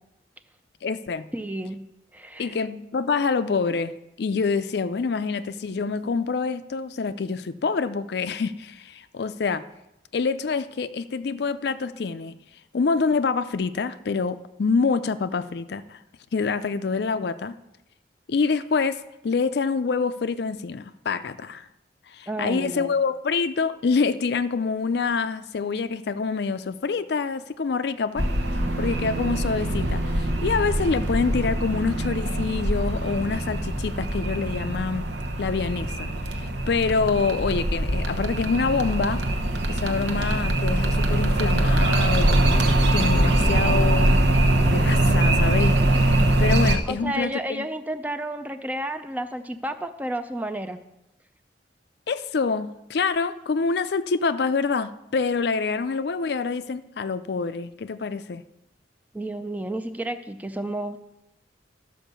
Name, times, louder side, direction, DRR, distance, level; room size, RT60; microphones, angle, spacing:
voice 1, 0.8-1.3 2.4-3.9 4.2-9.6 10.1-12.4 12.7-16.0 16.3-17.6 18.3-21.7 22.1-28.3 28.8-35.1 35.4-39.2 39.7-42.7 42.9-44.2 44.6-47.7 52.1-58.4, left 4 dB, 60° left, 13 dB, 0.4 m, -26 dB
voice 2, 1.3-1.8 2.1-2.6 22.3-22.9 46.8-50.8 59.1-61.0, right 1 dB, 10° right, 9 dB, 0.4 m, -31 dB
sound 1, 28.2-46.8, right 1 dB, 70° right, 1.1 m, -23 dB
12.5 x 5.3 x 6.8 m, 0.90 s
head